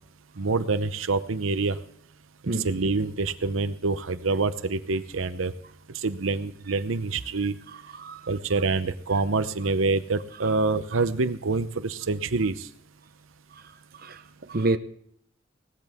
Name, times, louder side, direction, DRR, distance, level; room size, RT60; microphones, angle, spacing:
voice 1, 0.4-1.8 2.6-5.5 6.0-7.5 8.3-12.5, right 3 dB, 85° right, 0.8 m, -26 dB
voice 2, 14.0-14.8, right 2 dB, 50° right, 0.7 m, -28 dB
18.0 x 14.0 x 3.6 m
head